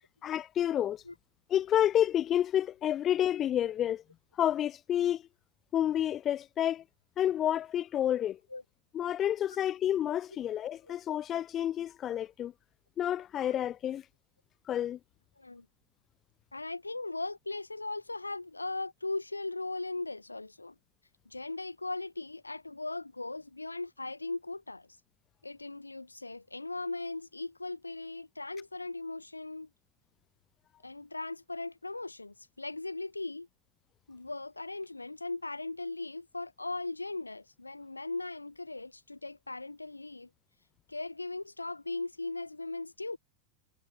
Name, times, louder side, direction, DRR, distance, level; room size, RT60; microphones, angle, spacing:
voice 1, 0.2-1.0 1.5-4.0 4.4-5.2 5.7-6.8 7.2-8.4 8.9-12.5 13.0-14.0 14.7-15.0, left 11 dB, 30° left, 0.4 m, -29 dB
voice 2, 16.5-20.7 21.3-24.9 25.4-29.7 30.8-33.5 34.1-40.3 40.9-43.2, left 2 dB, 80° left, 1.1 m, -38 dB
figure-of-eight pair, 90°, 0 cm